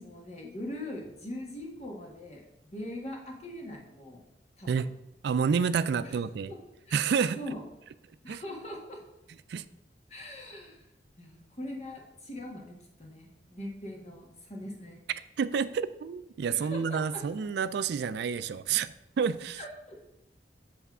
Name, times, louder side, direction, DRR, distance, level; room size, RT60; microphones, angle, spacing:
voice 1, 0.0-4.2 4.6-4.9 6.0-6.2 6.5-6.6 6.9-7.6 8.2-9.0 10.1-10.8 11.2-15.0 16.5-17.2 19.6-20.0, left 1 dB, 40° left, 0 dB, 1.6 m, -41 dB
voice 2, 5.2-6.5 6.9-7.4 8.3-8.4 9.5-9.6 15.4-18.9 19.2-19.6, right 6 dB, 65° right, 14 dB, 0.3 m, -29 dB
8.2 x 3.3 x 6.0 m, 0.89 s
head